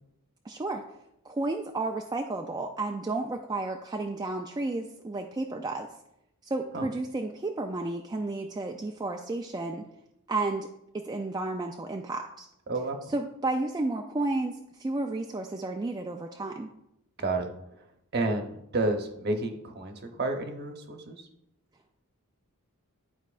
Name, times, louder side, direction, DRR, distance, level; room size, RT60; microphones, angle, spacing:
voice 1, 0.5-0.8 1.2-5.9 6.4-9.9 10.3-10.7 10.9-12.5 13.1-16.7, right 2 dB, 20° right, 2 dB, 0.3 m, -32 dB
voice 2, 12.7-13.0 17.2-17.5 18.1-21.2, right 2 dB, 45° right, 4 dB, 0.9 m, -30 dB
11.0 x 4.6 x 2.5 m, 0.81 s
head